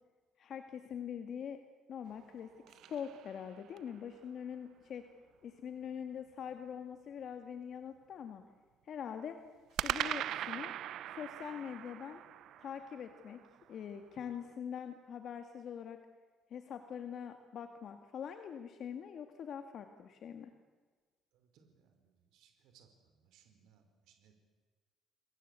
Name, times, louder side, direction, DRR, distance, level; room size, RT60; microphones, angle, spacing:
voice 1, 0.4-1.6 1.9-2.5 2.9-5.0 5.4-8.4 8.8-9.4 9.8-10.7 11.1-12.2 12.6-13.4 13.7-16.0 16.5-20.5, left 8 dB, 50° left, 7 dB, 1.9 m, -43 dB
sound 1, 2.1-4.0 9.8-14.0, right 12 dB, 65° right, 0.7 m, -41 dB
voice 2, 21.3-22.9 23.1-24.3, right 8 dB, 80° right, 5 dB, 4.9 m, -67 dB
29.5 x 22.0 x 8.3 m, 1.4 s
cardioid pair, 150°, 0 cm